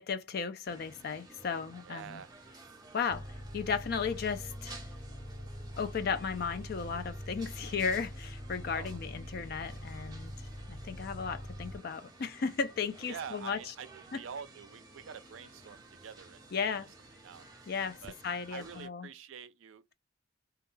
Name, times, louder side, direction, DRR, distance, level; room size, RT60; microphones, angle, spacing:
voice 1, 0.0-2.2 2.9-3.3 3.5-4.9 5.8-10.3 10.7-13.6 14.1-14.2 16.5-16.9 17.7-19.1, left 6 dB, 50° left, 0.4 m, -35 dB
sound 1, 0.7-18.9, right 3 dB, 20° right, 0.5 m, -54 dB
voice 2, 1.8-2.3 8.7-9.0 13.1-16.4 16.8-16.9 17.2-17.5 18.0-18.2 18.5-19.9, right 7 dB, 75° right, 0.4 m, -46 dB
sound 2, 3.1-11.8, equal, 70° left, 1.1 m, -44 dB
2.3 x 2.1 x 3.1 m
head